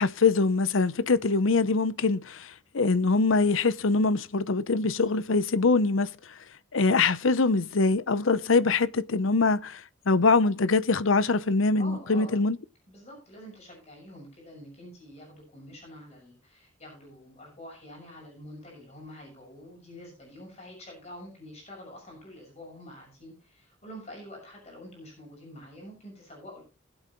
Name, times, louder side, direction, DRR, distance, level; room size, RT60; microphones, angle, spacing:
voice 1, 0.0-6.1 6.7-12.6, left 3 dB, 70° left, 0.7 m, -23 dB
voice 2, 11.8-12.4 12.9-26.6, left 1 dB, 30° left, 6.3 m, -46 dB
20.5 x 8.1 x 3.1 m
head